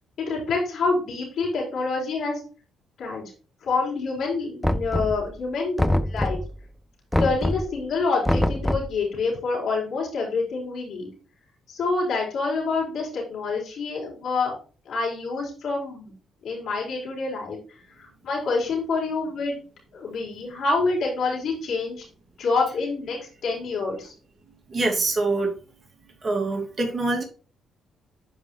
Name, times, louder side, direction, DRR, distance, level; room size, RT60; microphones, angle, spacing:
voice 1, 0.2-2.4 3.0-3.2 3.6-6.4 7.2-11.1 11.7-14.5 14.8-16.1 16.4-17.6 18.0-19.6 19.9-22.0 22.4-24.1, left 3 dB, 65° left, 4.7 m, -27 dB
Knock, 4.6-5.4 5.8-6.6 7.1-7.7 8.2-9.0, left 1 dB, 5° left, 0.6 m, -24 dB
voice 2, 24.7-25.5 26.2-27.2, right 2 dB, 35° right, 2.4 m, -24 dB
10.5 x 5.0 x 3.2 m
cardioid pair, 90°, 0 cm